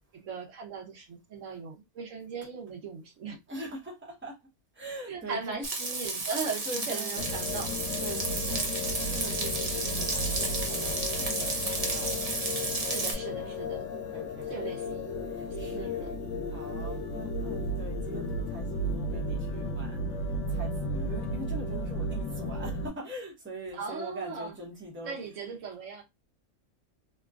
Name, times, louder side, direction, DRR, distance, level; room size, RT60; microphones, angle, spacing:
voice 1, 0.1-3.3 5.1-7.8 12.8-13.8 14.5-15.2 15.6-16.1 23.7-24.5 25.0-26.0, right 5 dB, 80° right, 1.1 m, -38 dB
voice 2, 3.5-4.4 4.7-5.6 6.6-7.3 8.0-8.7 9.0-13.0 14.1-14.7 15.2-25.2, right 1 dB, 10° right, 0.9 m, -43 dB
Frying (food), 5.6-13.1, right 3 dB, 40° right, 0.6 m, -32 dB
sound 1, 7.2-22.9, left 1 dB, 80° left, 1.0 m, -34 dB
2.9 x 2.3 x 2.3 m
omnidirectional pair, 1.3 m